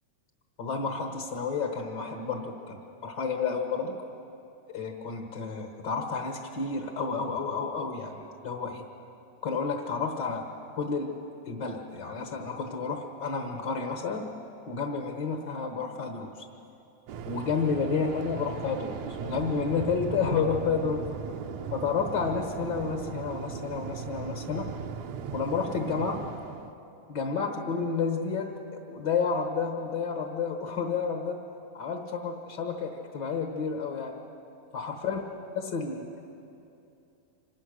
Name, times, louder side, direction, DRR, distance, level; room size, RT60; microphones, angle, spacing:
voice 1, 0.6-4.0 4.7-8.8 9.4-10.5 10.8-11.2 11.5-14.3 14.7-16.4 17.3-21.1 21.7-24.7 25.3-26.2 27.1-31.4 31.7-34.2 34.7-35.2 35.5-36.1, left 5 dB, 55° left, 3 dB, 1.2 m, -31 dB
Waves surf, 17.1-26.7, right 7 dB, 70° right, 1.8 m, -37 dB
25.5 x 19.0 x 6.4 m, 2.7 s
omnidirectional pair, 3.7 m